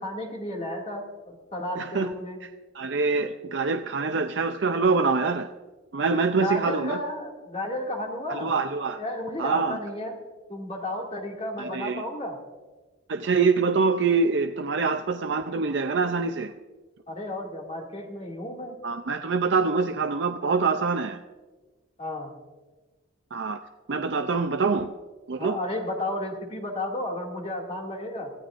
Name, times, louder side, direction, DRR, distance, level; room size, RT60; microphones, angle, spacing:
voice 1, 0.0-2.4 6.4-8.5 8.9-10.2 10.5-12.4 17.1-18.8 22.0-22.3 25.4-28.3, left 1 dB, 30° left, -1 dB, 2.3 m, -33 dB
voice 2, 1.8-2.1 2.7-5.5 5.9-7.0 8.3-9.0 9.4-9.8 11.6-12.0 13.1-16.5 18.8-21.2 23.3-23.6 23.9-24.9 25.3-25.6, right 4 dB, 60° right, 6 dB, 0.5 m, -25 dB
24.5 x 15.0 x 2.5 m, 1.3 s
head